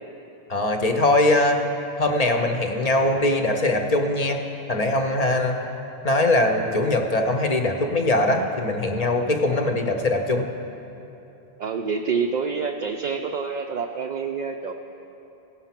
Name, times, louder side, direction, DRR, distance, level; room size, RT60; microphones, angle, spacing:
voice 1, 0.5-1.6 2.0-4.4 4.7-5.6 6.0-10.5, left 2 dB, 40° left, 4 dB, 0.8 m, -21 dB
voice 2, 11.6-14.7, right 5 dB, 55° right, 3 dB, 0.5 m, -27 dB
17.0 x 5.7 x 5.8 m, 2.9 s
omnidirectional pair, 1.1 m